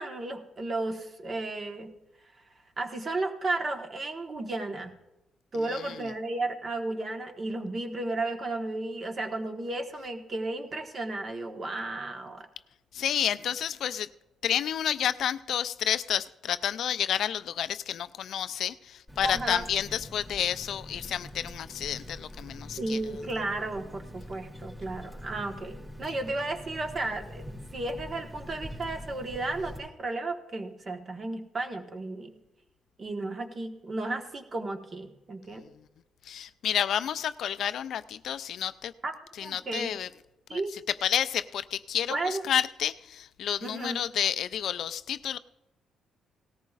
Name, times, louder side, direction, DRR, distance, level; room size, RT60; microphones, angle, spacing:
voice 1, 0.0-1.9 2.8-4.9 5.5-12.5 19.2-19.7 22.8-27.5 27.7-32.3 33.0-35.6 39.0-39.1 39.4-39.9 40.5-40.8 42.1-42.4 43.6-44.1, right 2 dB, 40° right, 5 dB, 1.3 m, -33 dB
voice 2, 5.6-6.1 12.9-14.1 14.4-23.0 26.1-26.2 35.5-35.7 36.2-38.9 39.4-40.1 40.5-45.4, left 9 dB, 70° left, 14 dB, 0.4 m, -30 dB
Water tap faucet, 19.1-29.8, left 1 dB, 15° right, 2.8 m, -44 dB
18.0 x 14.0 x 2.5 m, 0.95 s
cardioid pair, 90°, 0 cm